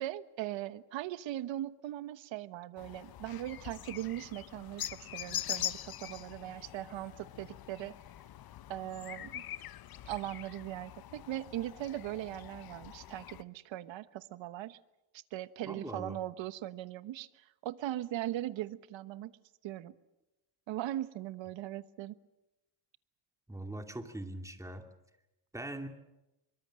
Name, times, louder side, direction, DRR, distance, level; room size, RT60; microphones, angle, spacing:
voice 1, 0.0-8.0 8.7-9.4 10.0-14.8 15.3-17.3 17.6-19.3 19.6-19.9 20.7-22.2, right 13 dB, 70° right, 14 dB, 1.2 m, -39 dB
sound 1, 2.8-13.4, left 12 dB, 50° left, 0.9 m, -43 dB
voice 2, 15.7-16.2 23.5-24.9 25.5-25.9, right 1 dB, 5° right, 5 dB, 2.5 m, -41 dB
24.5 x 23.0 x 7.6 m, 0.95 s
cardioid pair, 120°, 47 cm